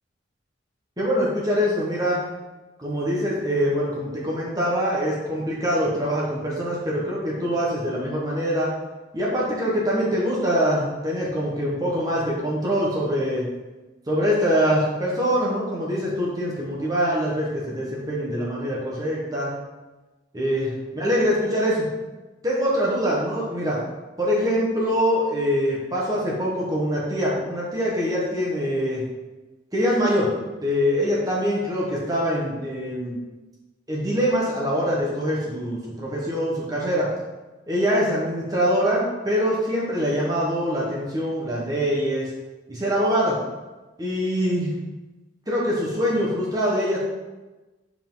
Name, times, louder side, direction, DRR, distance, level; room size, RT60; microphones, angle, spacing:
voice 1, 1.0-2.2 2.8-8.7 9.1-13.5 14.1-19.5 20.3-21.9 22.4-23.8 24.2-29.0 29.7-30.3 30.6-33.2 33.9-37.1 37.7-42.3 42.7-43.4 44.0-44.7 45.5-47.0, equal, 20° right, -5 dB, 1.4 m, -24 dB
8.2 x 4.8 x 3.9 m, 1.2 s
head